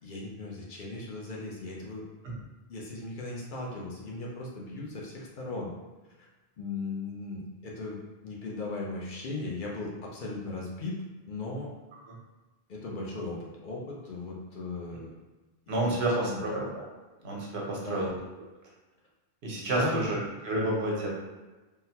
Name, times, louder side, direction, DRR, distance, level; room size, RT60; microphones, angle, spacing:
voice 1, 0.0-2.0 2.7-5.7 6.2-6.3 6.6-11.7 12.7-15.1 15.7-16.4 17.7-18.2 19.6-20.1, left 3 dB, 55° left, -3 dB, 0.7 m, -37 dB
voice 2, 15.7-16.8 17.2-18.1 19.4-20.2 20.4-21.1, right 1 dB, 80° right, -3 dB, 1.1 m, -29 dB
3.8 x 2.1 x 2.7 m, 1.2 s
omnidirectional pair, 1.1 m